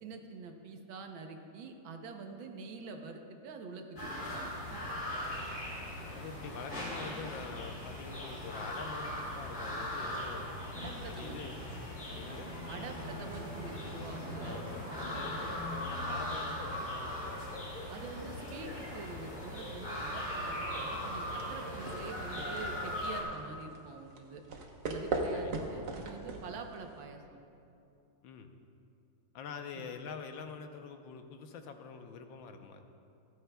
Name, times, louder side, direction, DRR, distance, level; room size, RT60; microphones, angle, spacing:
voice 1, 0.0-4.8 10.7-11.4 12.7-14.6 15.0-15.2 17.9-24.4 24.9-27.2 29.8-29.9, right 4 dB, 90° right, 4 dB, 1.7 m, -46 dB
sound 1, 4.0-23.2, left 1 dB, 30° left, 3.2 m, -39 dB
voice 2, 6.1-10.6 11.1-11.6 12.1-12.5 14.4-17.9 25.3-25.6 26.5-26.7 28.2-28.5 29.3-32.8, left 5 dB, 85° left, 6 dB, 1.5 m, -46 dB
Bowed string instrument, 12.1-17.1, left 1 dB, 5° left, 3.3 m, -45 dB
sound 2, 21.4-27.0, right 3 dB, 60° right, 1.5 m, -39 dB
28.0 x 9.5 x 2.3 m, 2.7 s
omnidirectional pair, 2.1 m